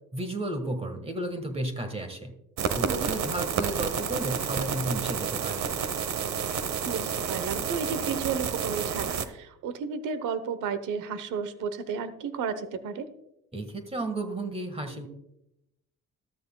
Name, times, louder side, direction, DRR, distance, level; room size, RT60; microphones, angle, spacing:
voice 1, 0.1-2.3 2.7-5.8 13.5-15.1, right 1 dB, 20° right, 7 dB, 1.5 m, -33 dB
sound 1, 2.6-9.2, right 6 dB, 65° right, 1.0 m, -30 dB
voice 2, 6.8-13.1, right 6 dB, 90° right, 12 dB, 1.0 m, -33 dB
13.5 x 13.0 x 2.3 m, 0.85 s
cardioid pair, 90°, 30 cm